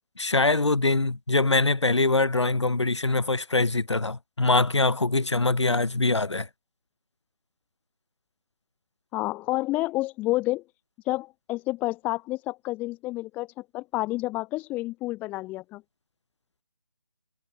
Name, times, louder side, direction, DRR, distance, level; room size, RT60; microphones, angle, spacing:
voice 1, 0.2-6.5, left 3 dB, 70° left, 3.3 m, -23 dB
voice 2, 9.1-10.6 11.0-15.8, left 19 dB, 10° left, 2.3 m, -29 dB
figure-of-eight pair, 155°, 15 cm